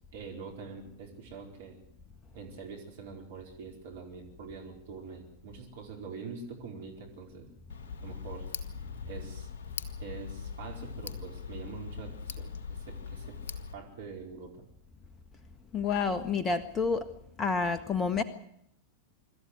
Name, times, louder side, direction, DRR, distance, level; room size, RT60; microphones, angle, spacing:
voice 1, 0.1-1.8 2.3-7.5 8.0-8.5 9.1-9.5 10.0-13.4 13.7-14.6, right 5 dB, 65° right, 1 dB, 4.6 m, -44 dB
Tick, 7.7-13.7, left 6 dB, 65° left, 1.6 m, -41 dB
voice 2, 15.7-17.1 17.4-18.2, left 5 dB, 20° left, 11 dB, 1.5 m, -29 dB
26.0 x 13.0 x 9.6 m, 0.73 s
figure-of-eight pair, 90°, 0 cm